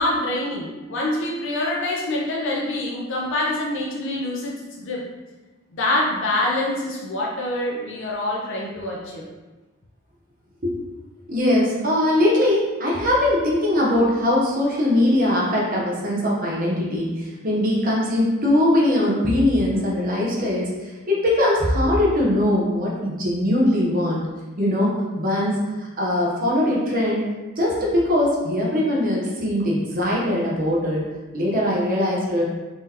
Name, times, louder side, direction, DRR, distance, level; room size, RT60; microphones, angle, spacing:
voice 1, 0.0-5.0 5.7-9.3, left 1 dB, 65° left, -3 dB, 0.6 m, -25 dB
voice 2, 11.3-24.2 24.6-27.2 27.6-31.0 31.3-32.4, left 1 dB, 45° right, -4 dB, 0.8 m, -21 dB
3.8 x 3.2 x 2.8 m, 1.2 s
head